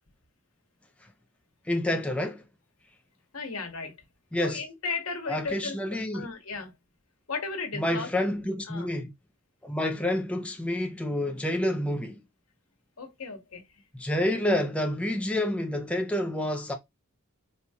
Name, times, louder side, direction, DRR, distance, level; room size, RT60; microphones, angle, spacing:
voice 1, 1.7-2.4 4.3-4.6 5.3-6.3 7.7-9.1 9.6-12.2 13.9-16.7, left 1 dB, 5° left, 0.5 m, -28 dB
voice 2, 3.3-4.0 4.4-6.7 7.3-8.9 13.0-13.8, left 4 dB, 80° left, 1.2 m, -36 dB
4.2 x 2.4 x 2.8 m
head